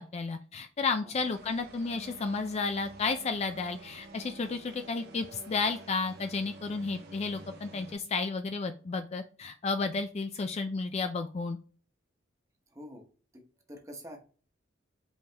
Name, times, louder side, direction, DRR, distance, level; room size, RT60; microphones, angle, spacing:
voice 1, 0.0-11.6, left 4 dB, 30° left, 8 dB, 0.3 m, -32 dB
sound 1, 1.2-7.9, right 2 dB, 55° right, 1.0 m, -50 dB
voice 2, 12.7-13.1 13.3-13.4 13.7-14.2, equal, 15° right, 2 dB, 1.0 m, -46 dB
5.4 x 3.4 x 2.8 m, 0.39 s
head